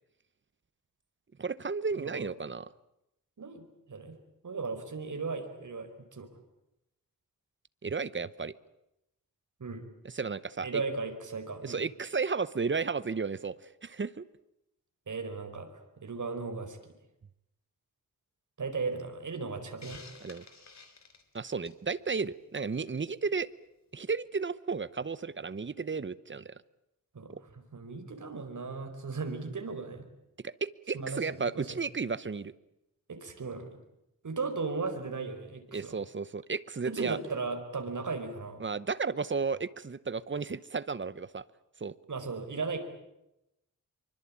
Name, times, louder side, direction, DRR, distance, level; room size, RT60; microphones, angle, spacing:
voice 1, 1.4-2.7 7.8-8.5 10.0-10.8 11.6-14.2 20.2-20.4 21.3-23.5 23.9-26.5 27.3-27.4 30.4-32.5 35.7-37.2 38.6-41.4 41.8-41.9, right 4 dB, 35° right, 17 dB, 0.9 m, -33 dB
voice 2, 1.9-2.3 3.4-4.2 4.4-6.3 9.6-9.8 10.6-11.8 15.1-16.8 18.6-20.0 27.1-30.1 30.9-31.7 33.1-33.7 34.2-36.0 36.8-38.6 42.1-42.8, right 4 dB, 60° right, 6 dB, 4.6 m, -36 dB
Hiss, 19.8-21.9, left 4 dB, 50° left, 3.6 m, -51 dB
25.5 x 24.5 x 8.7 m, 0.87 s
wide cardioid pair, 125°, 34 cm